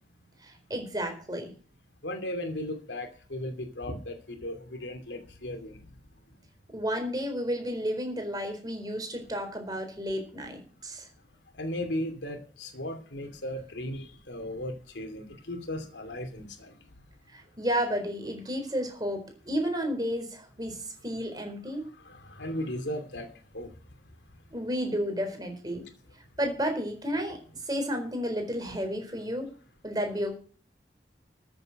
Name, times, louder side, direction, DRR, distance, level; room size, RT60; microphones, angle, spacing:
voice 1, 0.4-1.5 6.7-11.1 17.3-20.8 21.0-21.8 24.5-25.8 26.4-27.4 27.6-29.5 29.8-30.4, equal, 20° right, 5 dB, 4.2 m, -32 dB
voice 2, 2.0-5.8 11.6-16.7 22.1-23.3 23.5-23.7, left 1 dB, 85° left, 7 dB, 2.6 m, -36 dB
13.5 x 7.8 x 6.5 m, 0.41 s
head